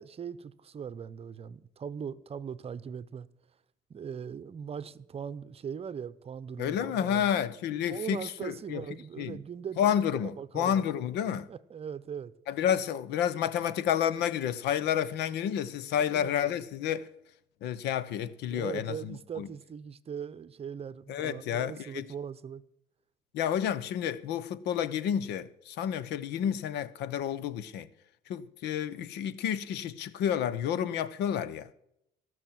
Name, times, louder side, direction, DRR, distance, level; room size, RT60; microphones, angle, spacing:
voice 1, 0.0-3.3 3.9-7.3 7.9-9.8 10.2-10.9 11.5-12.3 16.0-16.3 18.5-22.6, right 7 dB, 35° right, 0.8 m, -40 dB
voice 2, 6.6-8.8 9.2-9.4 9.8-11.5 12.5-17.1 17.6-19.5 21.1-22.0 23.3-27.9 28.3-31.7, left 9 dB, 80° left, 1.0 m, -30 dB
18.5 x 6.4 x 7.6 m
cardioid pair, 110°, 17 cm